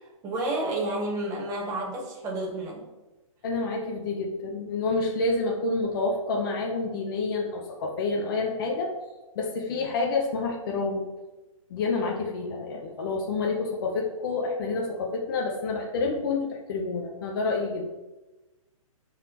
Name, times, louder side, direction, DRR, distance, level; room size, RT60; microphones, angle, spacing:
voice 1, 0.2-2.8, right 1 dB, 20° right, -2 dB, 1.3 m, -30 dB
voice 2, 3.4-9.0 9.4-11.1 11.7-17.9, left 3 dB, 40° left, 0 dB, 0.9 m, -28 dB
11.5 x 4.2 x 3.0 m, 1.1 s
hypercardioid pair, 160°, 18 cm